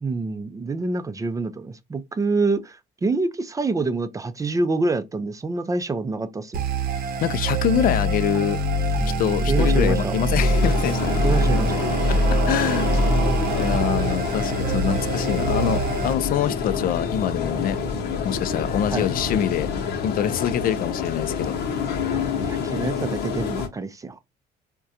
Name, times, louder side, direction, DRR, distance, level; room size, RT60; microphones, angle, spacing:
voice 1, 0.0-6.6 9.5-10.1 11.2-11.7 18.9-19.0 22.1-24.2, right 3 dB, 20° right, 0.4 m, -26 dB
sound 1, 6.5-16.1, right 2 dB, 60° right, 0.7 m, -23 dB
voice 2, 7.2-8.6 9.2-11.1 12.1-13.0 13.6-17.8 18.2-19.7 20.0-21.5, left 10 dB, 60° left, 0.4 m, -25 dB
sound 2, 10.4-23.7, left 6 dB, 75° left, 0.8 m, -28 dB
sound 3, 12.9-20.0, left 3 dB, 15° left, 0.9 m, -34 dB
3.6 x 2.2 x 2.7 m
cardioid pair, 110°, 17 cm